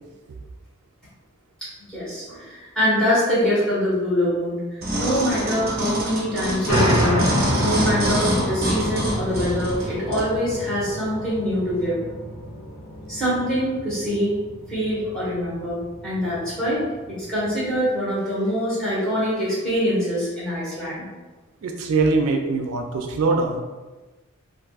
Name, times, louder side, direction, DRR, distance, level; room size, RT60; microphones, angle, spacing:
voice 1, 1.6-4.6 4.9-12.0 13.1-14.3 14.7-16.8 17.1-21.1, equal, 5° left, -10 dB, 1.2 m, -24 dB
sound 1, 4.8-10.3 10.9-11.0, right 1 dB, 45° right, 0.7 m, -26 dB
sound 2, 6.7-17.8, equal, 65° left, 1.3 m, -28 dB
voice 2, 21.6-23.6, right 3 dB, 85° right, 4 dB, 0.4 m, -22 dB
3.5 x 2.5 x 2.3 m, 1.2 s
head